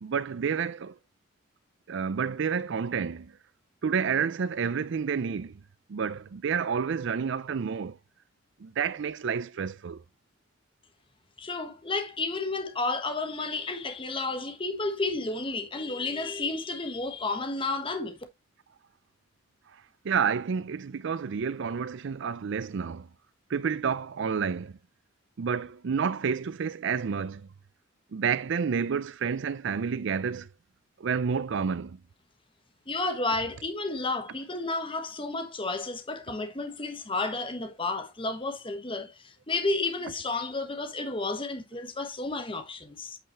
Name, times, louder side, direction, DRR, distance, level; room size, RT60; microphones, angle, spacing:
voice 1, 0.0-1.0 1.9-3.4 3.8-5.6 5.9-8.0 8.6-10.0 20.0-23.1 23.5-24.8 25.4-27.5 28.1-30.5 31.0-32.0, right 6 dB, 60° right, 0.4 m, -29 dB
voice 2, 11.4-18.2 32.9-43.2, left 3 dB, 25° left, 1.2 m, -32 dB
8.9 x 5.5 x 3.0 m
head